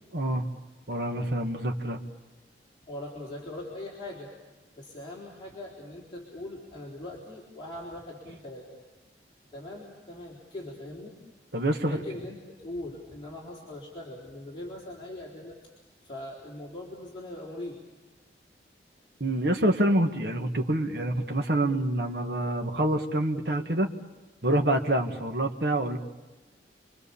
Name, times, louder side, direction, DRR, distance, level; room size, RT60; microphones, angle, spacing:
voice 1, 0.1-0.5 0.9-2.0 11.5-12.0 19.2-23.9 24.4-26.0, right 1 dB, 65° right, 4 dB, 1.8 m, -26 dB
voice 2, 2.9-4.3 4.7-8.8 9.5-11.2 11.9-15.6 16.0-17.8, left 1 dB, 30° left, -4 dB, 4.1 m, -41 dB
29.5 x 23.5 x 7.1 m, 1.2 s
head